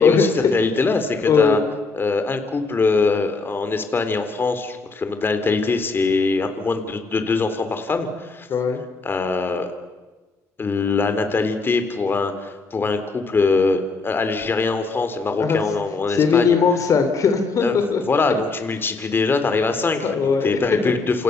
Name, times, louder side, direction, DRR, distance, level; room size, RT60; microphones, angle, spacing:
voice 1, 0.0-1.6 1.9-8.5 9.0-9.7 10.6-16.6 17.6-21.2, left 4 dB, 30° left, 8 dB, 3.7 m, -22 dB
voice 2, 1.3-1.6 8.5-8.8 15.4-15.6 16.1-18.0 20.0-20.5 20.8-20.9, left 6 dB, 45° left, 7 dB, 3.4 m, -18 dB
29.5 x 28.5 x 6.9 m, 1.2 s
supercardioid pair, 90°, 8 cm